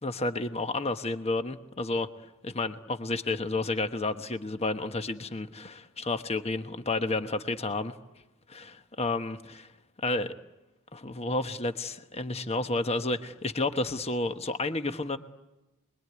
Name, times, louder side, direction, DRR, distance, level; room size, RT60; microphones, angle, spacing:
voice 1, 0.0-2.1 2.4-7.9 8.5-9.7 10.0-10.3 10.9-15.2, left 2 dB, 30° left, 8 dB, 1.2 m, -31 dB
28.0 x 22.0 x 9.6 m, 1.0 s
head